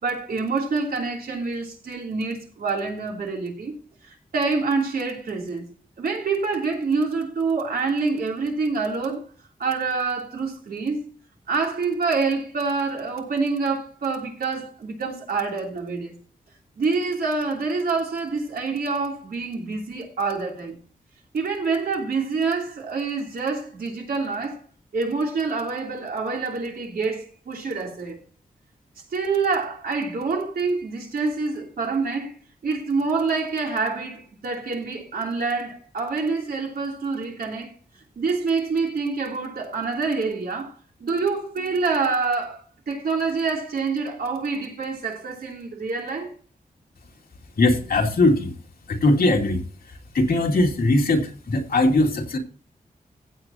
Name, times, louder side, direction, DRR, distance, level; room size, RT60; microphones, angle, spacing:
voice 1, 0.0-3.7 4.0-5.6 6.0-9.2 9.6-11.1 11.5-16.1 16.8-20.7 21.3-24.6 24.9-28.2 29.1-32.3 32.6-37.7 38.2-40.7 41.0-46.3, right 4 dB, 90° right, 3.2 m, -26 dB
voice 2, 47.6-48.5 48.9-49.6 50.1-52.4, left 2 dB, 85° left, 2.4 m, -20 dB
15.5 x 8.2 x 2.9 m
wide cardioid pair, 160°, 15 cm